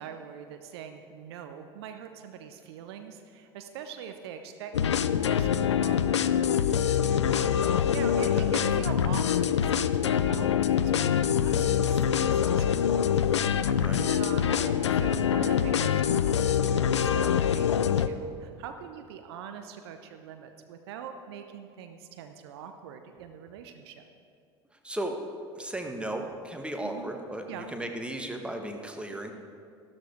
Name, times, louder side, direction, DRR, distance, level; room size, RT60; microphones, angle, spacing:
voice 1, 0.0-13.2 13.5-24.1 26.8-27.1 27.5-27.7, right 7 dB, 60° right, 7 dB, 0.8 m, -43 dB
sound 1, 4.7-18.1, left 8 dB, 75° left, 0.4 m, -25 dB
voice 2, 8.2-8.5 13.7-14.0 24.8-25.2 25.6-29.3, right 1 dB, 5° right, 4 dB, 1.4 m, -35 dB
13.5 x 12.5 x 4.7 m, 2.4 s
figure-of-eight pair, 65°, 15 cm